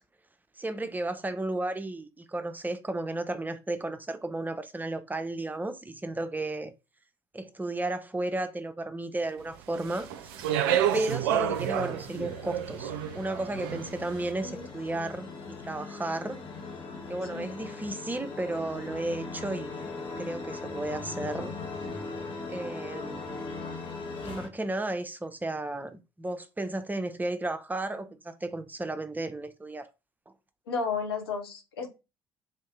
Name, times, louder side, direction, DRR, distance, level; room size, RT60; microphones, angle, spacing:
voice 1, 0.6-6.7 7.3-10.1 10.9-15.3 15.6-16.4 17.1-21.5 22.5-23.5 24.2-29.9, right 2 dB, 15° right, 0.5 m, -33 dB
Speech, 9.7-14.1, right 10 dB, 65° right, 0.4 m, -29 dB
sound 1, 9.9-24.5, left 3 dB, 40° left, 0.9 m, -40 dB
voice 2, 30.7-31.9, left 5 dB, 75° left, 0.7 m, -33 dB
3.8 x 2.7 x 3.6 m
figure-of-eight pair, 50°, 13 cm